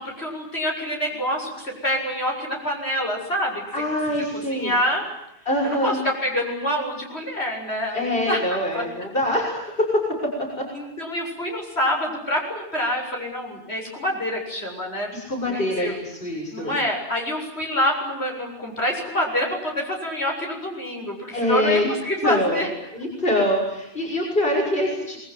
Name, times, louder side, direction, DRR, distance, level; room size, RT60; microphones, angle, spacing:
voice 1, 0.0-3.6 4.3-5.1 5.6-8.8 10.7-15.1 15.4-16.0 16.5-22.7, equal, 70° left, 1 dB, 8.0 m, -26 dB
voice 2, 3.7-4.7 5.4-6.0 7.9-10.0 15.1-16.7 21.3-21.9 22.2-22.7 22.9-25.2, left 1 dB, 55° left, 0 dB, 6.9 m, -24 dB
27.5 x 21.5 x 9.7 m, 0.83 s
omnidirectional pair, 1.1 m